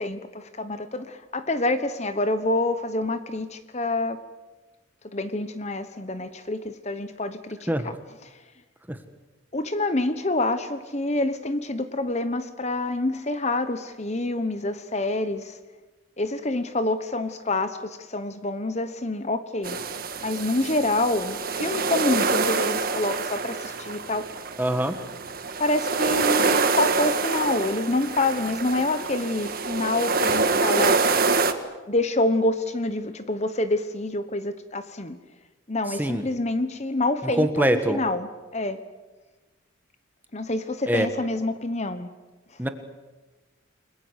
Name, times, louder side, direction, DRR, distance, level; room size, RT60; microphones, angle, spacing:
voice 1, 0.0-4.2 5.1-8.0 9.5-15.5 16.2-19.8 20.2-24.3 25.6-31.0 31.9-35.2 35.7-38.8 40.3-42.1, left 2 dB, 30° left, 11 dB, 1.1 m, -27 dB
sound 1, 19.6-31.5, right 4 dB, 45° right, 1.7 m, -26 dB
voice 2, 24.6-25.0 36.0-36.2 37.4-38.0 40.9-41.1 42.6-42.7, right 1 dB, 10° right, 8 dB, 1.6 m, -23 dB
29.5 x 21.0 x 8.2 m, 1.2 s
head